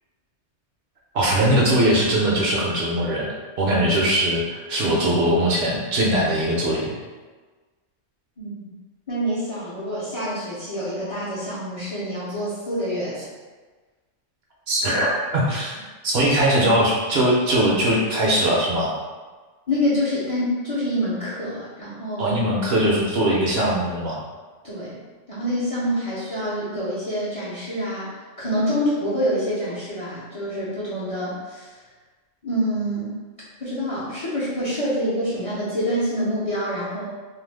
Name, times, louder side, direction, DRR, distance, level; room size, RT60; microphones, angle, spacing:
voice 1, 1.1-3.3 3.6-7.0 14.7-19.0 22.2-24.2, right 1 dB, 65° right, -4 dB, 0.8 m, -21 dB
voice 2, 8.4-8.7 9.1-13.3 19.7-22.4 24.6-25.0 25.3-31.8 32.4-33.1 33.6-37.0, equal, 40° left, -10 dB, 0.5 m, -26 dB
2.4 x 2.1 x 3.3 m, 1.3 s
omnidirectional pair, 1.3 m